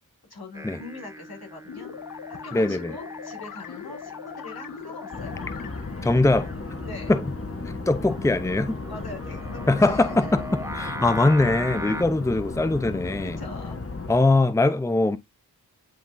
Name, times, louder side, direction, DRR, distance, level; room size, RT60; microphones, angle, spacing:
voice 1, 0.3-1.9 2.3-5.4 6.9-7.1 8.8-10.3 13.2-13.8, left 3 dB, 80° left, 2.7 m, -42 dB
Singing, 0.5-12.0, right 1 dB, 10° right, 1.1 m, -40 dB
sound 1, 1.7-6.1, left 9 dB, 60° left, 0.5 m, -40 dB
voice 2, 2.5-2.9 6.0-6.5 7.1-7.2 7.9-8.8 9.7-10.4 10.7-13.4 14.1-15.2, left 2 dB, 10° left, 0.7 m, -21 dB
sound 2, 5.1-14.2, left 3 dB, 35° left, 1.3 m, -35 dB
10.5 x 3.5 x 2.6 m
cardioid pair, 40°, 37 cm